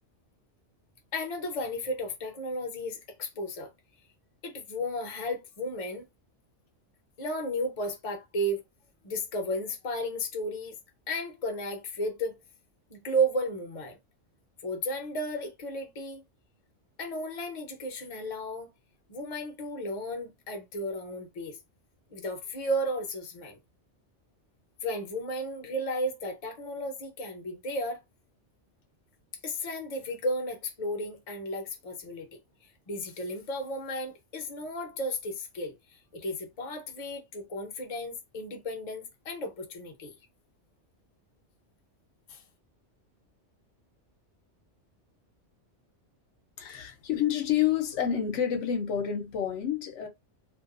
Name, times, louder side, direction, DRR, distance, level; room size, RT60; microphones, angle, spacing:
voice 1, 1.1-3.7 4.4-6.0 7.2-8.6 9.0-10.8 11.1-12.4 12.9-14.0 14.6-16.2 17.0-18.7 19.1-21.6 22.1-23.6 24.8-28.0 29.4-32.4 32.9-40.1 42.3-42.4, equal, 35° left, 0.7 m, -34 dB
voice 2, 46.6-50.1, left 9 dB, 80° left, 0.9 m, -28 dB
2.5 x 2.3 x 2.3 m
omnidirectional pair, 1.2 m